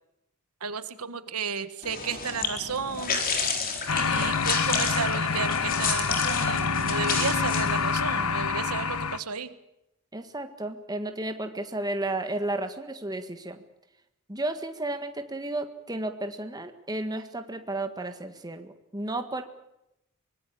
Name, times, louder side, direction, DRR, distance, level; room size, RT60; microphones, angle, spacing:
voice 1, 0.6-3.2 3.9-9.6, right 5 dB, 80° right, 12 dB, 1.5 m, -33 dB
sound 1, 1.8-8.0, left 5 dB, 40° left, 4.2 m, -31 dB
sound 2, 3.9-9.2, left 5 dB, 75° left, 1.2 m, -27 dB
voice 2, 10.1-13.6 14.3-19.4, right 2 dB, 15° right, 7 dB, 1.7 m, -33 dB
24.0 x 19.5 x 8.6 m, 0.86 s
head